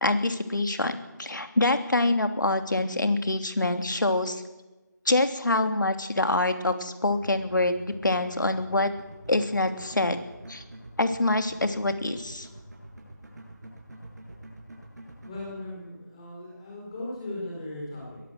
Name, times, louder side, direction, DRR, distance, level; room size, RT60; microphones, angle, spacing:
voice 1, 0.0-4.4 5.0-7.8 8.0-8.9 9.3-10.2 10.5-10.6 11.0-12.5, left 2 dB, 75° left, 7 dB, 3.1 m, -25 dB
sound 1, 7.0-15.5, right 1 dB, 60° right, 7.8 m, -46 dB
voice 2, 15.2-18.2, left 1 dB, 20° left, -3 dB, 4.4 m, -37 dB
22.0 x 15.0 x 7.9 m, 1.1 s
figure-of-eight pair, 170°, 10 cm